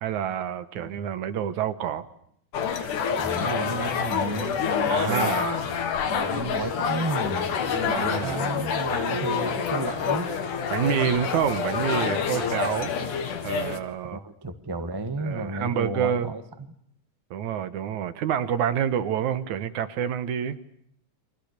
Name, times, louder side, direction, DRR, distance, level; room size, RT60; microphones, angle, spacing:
voice 1, 0.0-2.1 4.9-5.7 7.9-8.4 10.7-12.9 13.4-14.2 15.2-16.3 17.3-20.6, right 9 dB, 70° right, 12 dB, 2.5 m, -28 dB
sound 1, 2.5-13.8, left 7 dB, 85° left, 3.5 m, -27 dB
voice 2, 3.2-5.4 5.9-10.3 14.1-16.4, right 2 dB, 15° right, 8 dB, 0.7 m, -32 dB
sound 2, 7.2-13.2, left 2 dB, 35° left, 4.5 m, -40 dB
30.0 x 24.5 x 6.7 m, 0.69 s
omnidirectional pair, 3.6 m